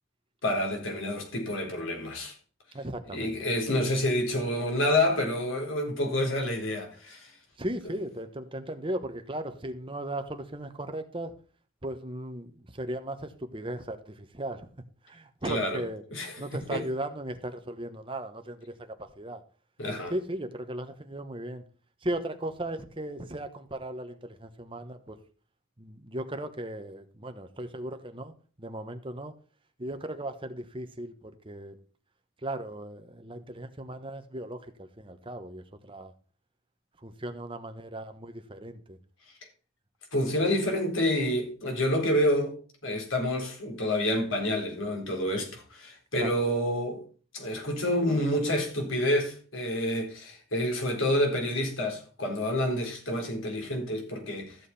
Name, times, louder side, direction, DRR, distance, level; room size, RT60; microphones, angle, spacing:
voice 1, 0.4-2.3 3.1-7.3 15.5-15.8 16.1-16.4 16.7-16.8 19.8-20.1 40.1-42.5 42.8-47.0 47.3-54.6, left 1 dB, 80° left, 3.9 m, -28 dB
voice 2, 2.7-3.3 7.6-11.3 11.8-14.7 15.0-16.0 16.4-19.4 20.1-21.6 22.0-25.2 25.8-28.3 28.6-29.3 29.8-31.8 32.4-36.1 37.0-39.0 46.2-46.3, right 1 dB, 25° right, 1.3 m, -37 dB
13.5 x 7.4 x 4.3 m
head